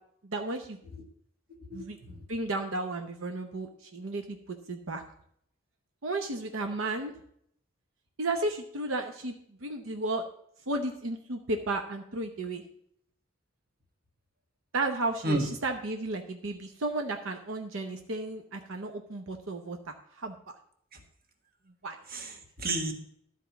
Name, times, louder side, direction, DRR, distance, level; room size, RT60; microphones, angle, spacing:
voice 1, 0.2-0.8 1.7-5.0 6.0-7.1 8.2-9.4 9.6-10.2 10.7-12.6 14.7-20.4 21.8-22.0, right 2 dB, 80° right, 5 dB, 0.8 m, -33 dB
voice 2, 1.7-2.2 15.2-15.5 20.9-21.0 22.1-22.9, right 2 dB, 45° right, 4 dB, 1.5 m, -32 dB
12.0 x 4.5 x 7.0 m, 0.68 s
head